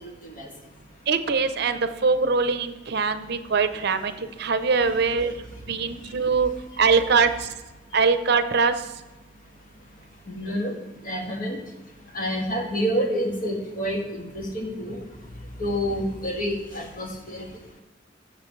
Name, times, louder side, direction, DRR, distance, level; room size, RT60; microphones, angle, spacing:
voice 1, 0.0-0.5 10.3-10.7 11.0-11.6 12.1-15.0 15.6-17.5, equal, 50° left, -1 dB, 2.2 m, -28 dB
voice 2, 1.1-5.3 5.7-6.5 6.8-7.5 7.9-8.7, right 5 dB, 60° right, 10 dB, 0.7 m, -22 dB
15.5 x 6.9 x 3.2 m, 1.1 s
head